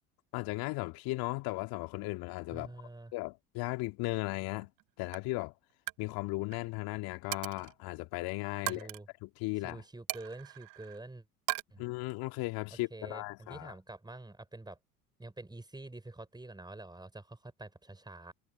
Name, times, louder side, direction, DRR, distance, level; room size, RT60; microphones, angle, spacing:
voice 1, 0.3-2.7 3.1-4.7 5.0-5.5 6.0-8.9 9.2-9.8 11.8-13.7, left 22 dB, 55° left, 2.0 m, -36 dB
voice 2, 2.5-3.1 8.6-9.1 9.6-11.3 11.7-11.8 12.9-14.8 15.2-18.3, right 2 dB, 10° right, 5.5 m, -47 dB
Coin (dropping), 4.6-4.8 5.1-5.4 5.7-6.0 6.3-6.6 7.3-7.8 8.7-9.0 10.1-11.0 11.5-11.6, right 24 dB, 50° right, 0.9 m, -38 dB
figure-of-eight pair, 70°, 43 cm